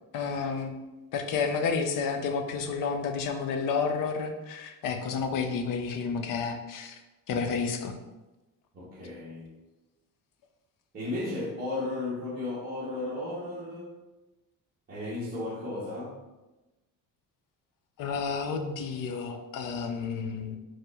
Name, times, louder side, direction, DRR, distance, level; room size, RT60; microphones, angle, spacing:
voice 1, 0.1-0.8 1.1-7.0 7.3-7.9 18.0-20.6, left 5 dB, 70° left, 5 dB, 0.6 m, -30 dB
voice 2, 8.7-9.6 10.9-13.9 14.9-16.2, left 2 dB, 25° right, -8 dB, 0.9 m, -34 dB
4.7 x 2.1 x 4.7 m, 1.1 s
cardioid pair, 155°, 34 cm